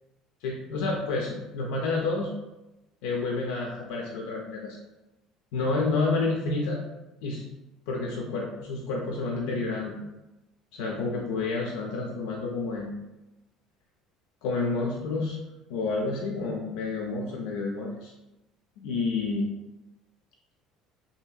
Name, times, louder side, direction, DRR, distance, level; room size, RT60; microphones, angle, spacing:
voice 1, 0.4-2.3 3.0-4.8 5.5-6.8 7.2-7.4 7.9-10.0 10.7-12.9 14.4-15.4 15.7-18.1 18.8-19.5, left 3 dB, 85° left, 0 dB, 0.3 m, -29 dB
2.7 x 2.6 x 2.3 m, 0.98 s
supercardioid pair, 110°, 0 cm